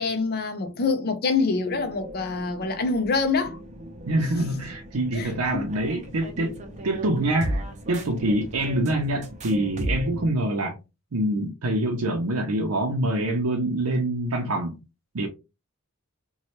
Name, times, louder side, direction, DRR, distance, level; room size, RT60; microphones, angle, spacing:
voice 1, 0.0-3.6 5.1-5.7, left 4 dB, 45° left, 0.6 m, -26 dB
sound 1, 1.7-10.3, equal, 30° right, 0.6 m, -36 dB
voice 2, 4.1-6.6 6.8-7.6 7.9-10.8 11.1-14.8 15.1-15.3, right 1 dB, 80° right, 0.6 m, -25 dB
3.1 x 2.3 x 2.9 m
head